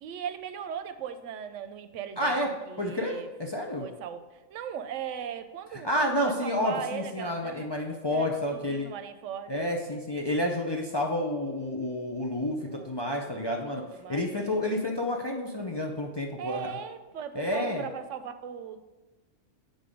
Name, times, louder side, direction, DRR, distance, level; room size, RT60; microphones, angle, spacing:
voice 1, 0.0-3.3 3.8-7.7 8.1-9.8 12.7-12.9 13.2-13.6 13.9-14.8 16.4-18.8, right 8 dB, 90° right, 10 dB, 0.9 m, -39 dB
voice 2, 2.2-2.5 2.8-3.9 5.8-8.9 9.5-13.8 14.1-16.7 17.3-17.9, left 1 dB, 35° left, 0 dB, 0.4 m, -30 dB
8.4 x 3.9 x 5.0 m, 1.2 s
omnidirectional pair, 1.2 m